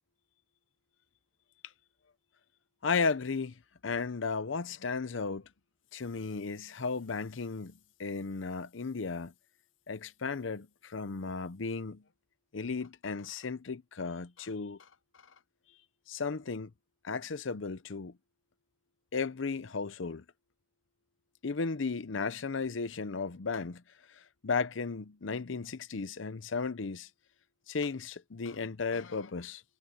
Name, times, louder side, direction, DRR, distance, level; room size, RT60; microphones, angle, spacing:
voice 1, 2.8-5.5 5.9-9.3 9.9-12.0 12.5-14.9 16.1-16.7 17.0-18.1 19.1-20.2 21.4-23.8 24.1-27.1 27.7-29.6, left 4 dB, 80° left, 0.7 m, -35 dB
head